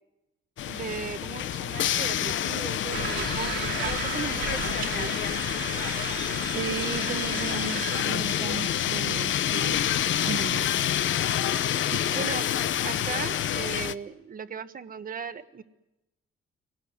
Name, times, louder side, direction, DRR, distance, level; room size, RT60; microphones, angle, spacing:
sound 1, 0.6-13.9, left 10 dB, 65° left, 0.9 m, -28 dB
voice 1, 0.7-5.2 11.1-11.4 12.1-12.4 12.8-15.6, right 7 dB, 40° right, 1.4 m, -37 dB
sound 2, 2.9-8.0, right 8 dB, 75° right, 2.6 m, -35 dB
sound 3, 3.1-13.8, left 3 dB, 20° left, 1.5 m, -44 dB
voice 2, 6.4-9.8 10.3-11.0 11.9-12.3, right 9 dB, 55° right, 0.9 m, -36 dB
25.0 x 19.0 x 9.6 m
cardioid pair, 135°, 21 cm